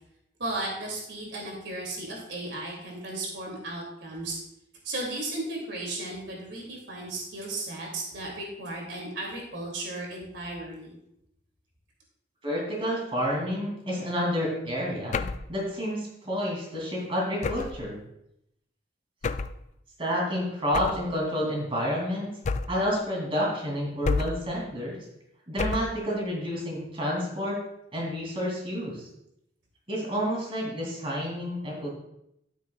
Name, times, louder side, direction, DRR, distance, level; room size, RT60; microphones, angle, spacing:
voice 1, 0.4-4.4 4.8-11.0, right 2 dB, 90° right, -1 dB, 2.6 m, -35 dB
voice 2, 12.4-15.2 15.5-18.0 20.0-22.3 22.7-25.0 25.5-27.6 27.9-29.1 29.9-31.9, equal, 30° right, -2 dB, 2.8 m, -29 dB
sound 1, 15.1-15.5 17.4-17.9 19.2-19.6 20.7-21.1 22.4-22.9 24.0-24.5 25.6-26.0, left 4 dB, 40° left, 0.3 m, -30 dB
11.5 x 8.8 x 2.4 m, 0.80 s
head